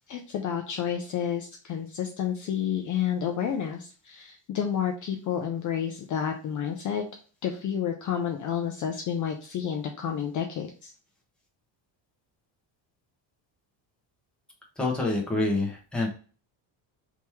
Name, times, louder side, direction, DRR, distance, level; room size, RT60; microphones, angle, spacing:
voice 1, 0.1-7.0 7.4-10.9, left 8 dB, 40° left, 3 dB, 0.4 m, -30 dB
voice 2, 14.8-16.1, left 2 dB, ahead, -2 dB, 0.8 m, -27 dB
3.5 x 3.0 x 4.4 m, 0.39 s
cardioid pair, 175°, 48 cm